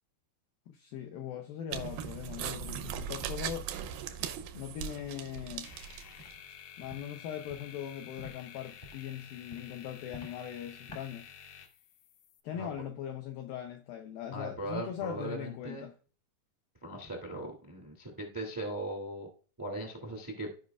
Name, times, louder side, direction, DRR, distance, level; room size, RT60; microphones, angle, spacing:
voice 1, 0.7-3.7 4.5-5.8 6.8-11.3 12.4-15.9, left 10 dB, 90° left, 2.0 m, -40 dB
sound 1, 1.7-6.3, right 9 dB, 85° right, 2.1 m, -39 dB
sound 2, 5.6-12.4, left 8 dB, 75° left, 2.2 m, -51 dB
Walk footsteps, 6.2-6.3 6.8-7.0 7.5-7.6 8.2-8.3 8.8-9.0 9.5-9.7 10.1-10.3 10.9-11.0, left 2 dB, 45° left, 0.7 m, -47 dB
voice 2, 14.3-15.8 16.8-19.3 19.6-20.5, right 1 dB, 20° right, 0.5 m, -39 dB
15.0 x 5.2 x 2.4 m
omnidirectional pair, 5.1 m